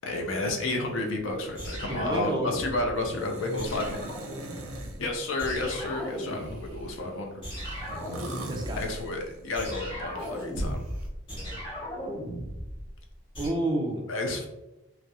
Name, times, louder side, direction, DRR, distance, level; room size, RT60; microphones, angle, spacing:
voice 1, 0.0-4.1 5.0-7.4 8.8-10.9 14.1-14.5, left 2 dB, 65° left, 2 dB, 0.5 m, -31 dB
sound 1, 1.5-3.1 3.6-5.1 5.4-7.0 7.4-13.5, equal, 25° left, 0.8 m, -37 dB
voice 2, 1.9-2.5 8.5-9.1 11.3-11.6 13.4-14.1, right 1 dB, 20° right, 0 dB, 0.4 m, -31 dB
sound 2, 3.0-5.0 5.5-6.9 7.6-9.6 10.2-11.1, right 1 dB, 85° right, 0.5 m, -40 dB
2.3 x 2.0 x 2.8 m, 0.95 s
head